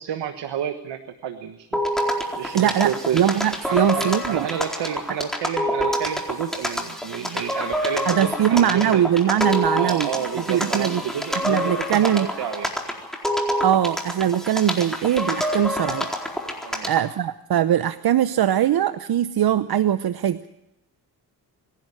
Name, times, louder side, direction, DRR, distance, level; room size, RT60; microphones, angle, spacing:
voice 1, 0.0-1.8 2.3-3.2 3.7-9.1 9.8-12.7 16.6-16.9, right 9 dB, 85° right, 8 dB, 1.4 m, -30 dB
sound 1, 1.7-17.1, equal, ahead, 4.2 m, -27 dB
voice 2, 2.5-4.5 8.1-10.1 10.3-11.0 11.4-12.3 13.6-16.1 16.9-20.5, right 10 dB, 60° right, 13 dB, 0.8 m, -21 dB
24.5 x 11.5 x 10.0 m, 0.88 s
cardioid pair, 75°, 41 cm